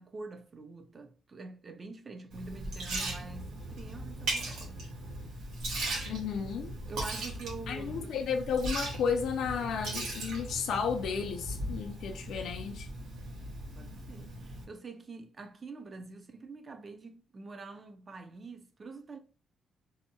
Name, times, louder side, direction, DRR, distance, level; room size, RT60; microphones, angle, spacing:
voice 1, 0.0-4.9 5.9-6.3 6.9-8.3 13.8-19.2, right 3 dB, 30° right, 0.4 m, -46 dB
Liquid, 2.3-14.6, right 1 dB, 85° right, 1.0 m, -38 dB
voice 2, 6.1-6.7 7.7-12.9, left 6 dB, 75° left, 0.4 m, -33 dB
2.7 x 2.1 x 2.7 m
cardioid pair, 145°, 0 cm